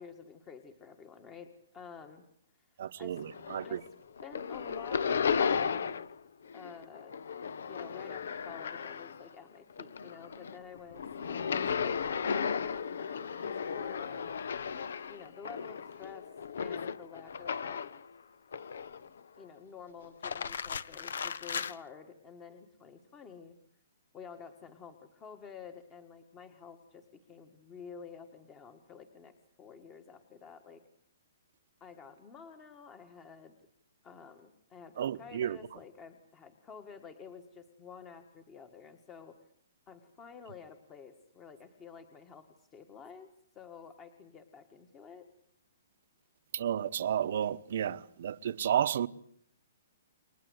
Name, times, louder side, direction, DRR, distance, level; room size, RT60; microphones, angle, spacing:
voice 1, 0.0-2.2 2.5-3.2 3.6-3.9 4.2-6.1 6.5-7.2 7.7-14.3 15.1-16.3 16.6-17.9 19.4-23.5 24.1-30.8 31.8-33.5 34.0-39.4 39.9-43.3 43.6-45.3, left 6 dB, 15° left, 1.6 m, -50 dB
voice 2, 2.8-3.8 35.0-35.6 46.5-49.1, right 9 dB, 50° right, 1.1 m, -32 dB
sound 1, 3.2-3.9 4.2-6.2 6.5-9.3 9.7-18.0 18.5-19.2 20.0-21.7, left 6 dB, 70° left, 1.5 m, -35 dB
29.5 x 23.5 x 8.1 m
hypercardioid pair, 175°, 0 cm